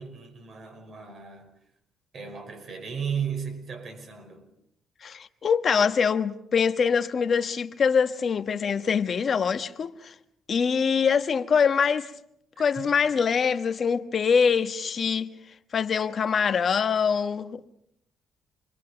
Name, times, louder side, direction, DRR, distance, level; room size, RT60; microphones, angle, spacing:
voice 1, 0.0-1.5 2.1-4.5 12.5-12.9, right 7 dB, 55° right, 5.0 m, -35 dB
voice 2, 5.0-10.1 10.5-12.1 12.6-15.3 15.7-17.6, left 6 dB, 50° left, 1.3 m, -24 dB
28.0 x 22.5 x 5.9 m
cardioid pair, 90°, 0 cm